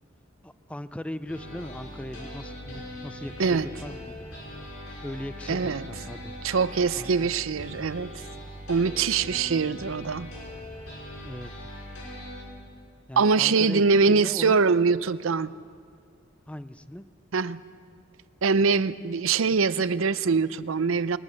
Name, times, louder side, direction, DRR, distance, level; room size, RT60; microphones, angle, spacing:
voice 1, 0.4-4.2 5.0-6.3 6.9-7.4 11.2-11.5 13.1-14.6 16.5-17.0, left 1 dB, 5° left, 13 dB, 0.5 m, -38 dB
sound 1, 1.3-12.4, equal, 90° left, 6.0 m, -41 dB
voice 2, 5.5-5.8 6.4-8.2 8.7-10.3 13.2-15.5 17.3-17.6 18.4-21.2, right 5 dB, 85° right, 16 dB, 0.6 m, -23 dB
21.0 x 19.0 x 6.5 m, 2.3 s
head